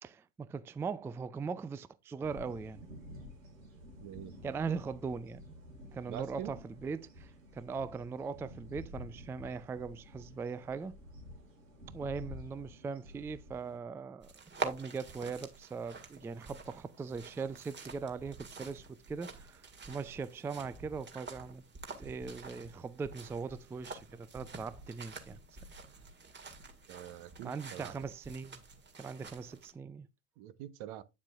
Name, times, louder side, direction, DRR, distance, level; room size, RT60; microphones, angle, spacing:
voice 1, 0.0-2.8 4.4-5.5 5.9-11.0 11.9-14.3 14.6-21.6 22.0-25.4 27.4-28.6 29.0-30.1, right 5 dB, 5° right, 0.3 m, -40 dB
sound 1, 2.2-13.8, left 1 dB, 80° right, 4.4 m, -51 dB
voice 2, 4.0-4.3 6.1-6.5 26.9-28.0 30.4-31.0, right 12 dB, 55° right, 1.0 m, -45 dB
sound 2, 14.2-29.7, right 3 dB, 25° right, 2.1 m, -47 dB
9.0 x 7.4 x 2.4 m
hypercardioid pair, 80°, 40 cm